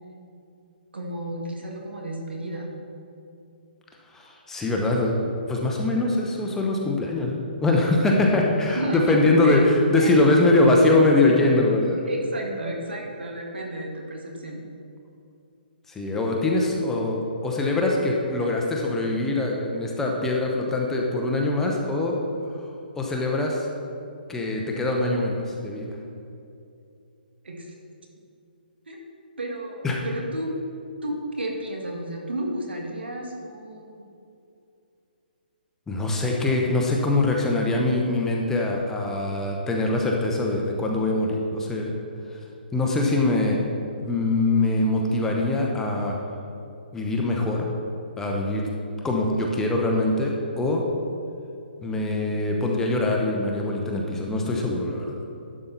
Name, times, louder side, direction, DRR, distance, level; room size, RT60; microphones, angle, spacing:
voice 1, 0.9-2.7 8.7-9.6 9.9-10.3 12.1-14.6 18.4-18.5 27.4-27.7 28.9-29.0 29.4-30.5 31.0-33.9, right 1 dB, 85° right, 0 dB, 1.8 m, -32 dB
voice 2, 4.1-12.0 15.9-22.2 23.0-23.7 24.3-26.0 29.8-30.0 35.9-41.9 42.7-43.6 44.0-46.1 46.9-47.7 48.2-48.7 49.0-50.8 51.8-55.1, left 2 dB, 10° left, -1 dB, 0.8 m, -23 dB
11.0 x 5.7 x 4.0 m, 2.6 s
hypercardioid pair, 150°, 6 cm